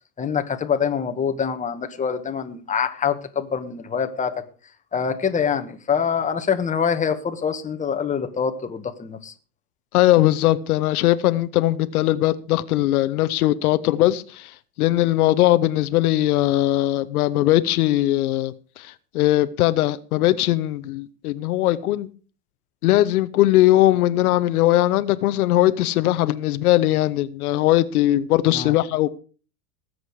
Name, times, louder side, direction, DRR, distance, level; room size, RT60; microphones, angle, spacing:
voice 1, 0.2-4.4 4.9-9.3 28.5-28.7, left 7 dB, 15° left, 1.6 m, -25 dB
voice 2, 9.9-22.1 22.8-29.2, left 15 dB, 70° left, 1.1 m, -20 dB
19.5 x 7.9 x 4.8 m
hypercardioid pair, 120°, 46 cm